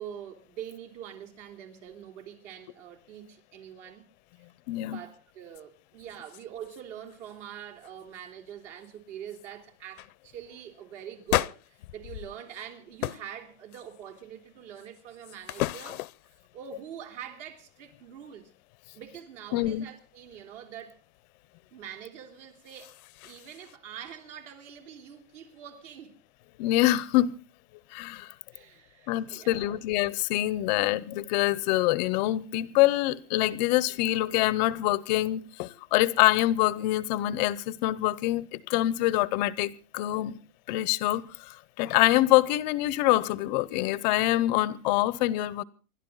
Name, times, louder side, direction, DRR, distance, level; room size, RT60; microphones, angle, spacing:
voice 1, 0.0-4.1 4.9-16.0 16.3-18.5 18.9-21.0 21.7-22.9 23.2-26.2 28.5-29.8, right 9 dB, 50° right, 3.8 m, -44 dB
voice 2, 4.7-5.0 19.5-19.9 26.6-27.4 27.9-28.3 29.1-40.4 40.7-45.6, left 16 dB, 30° left, 0.7 m, -25 dB
sound 1, 5.5-5.6 6.0-6.8 7.1-7.4 7.8-8.2 8.8-8.9 9.3-9.5 9.9-10.1 11.3-12.7 13.0-13.3 13.7-14.2 14.8-16.4 22.4-23.8, left 15 dB, 65° left, 0.7 m, -35 dB
28.0 x 12.0 x 3.9 m
supercardioid pair, 160°, 46 cm